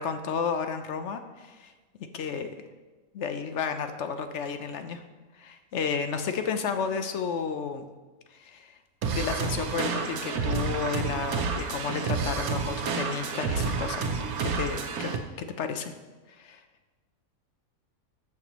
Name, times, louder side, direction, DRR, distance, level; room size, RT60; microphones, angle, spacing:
voice 1, 0.0-1.7 2.1-2.5 3.1-5.0 5.4-7.9 8.4-8.7 9.1-15.1 15.4-15.9 16.4-16.6, left 6 dB, 60° left, 8 dB, 0.9 m, -32 dB
sound 1, 9.0-15.2, right 5 dB, 80° right, 1.3 m, -30 dB
14.0 x 6.0 x 3.0 m, 1.2 s
omnidirectional pair, 1.5 m